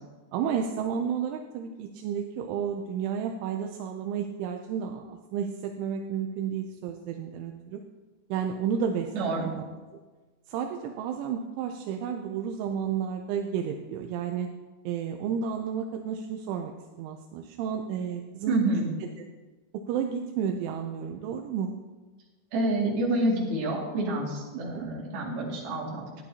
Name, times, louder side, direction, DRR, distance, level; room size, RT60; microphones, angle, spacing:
voice 1, 0.3-7.8 8.3-9.7 10.5-14.5 14.9-18.6 19.9-21.7 24.7-24.9, right 7 dB, 85° right, 4 dB, 3.1 m, -32 dB
voice 2, 9.1-9.5 18.5-18.9 22.5-26.0, right 1 dB, 55° right, -4 dB, 3.9 m, -28 dB
14.0 x 11.0 x 2.8 m, 1.2 s
omnidirectional pair, 5.5 m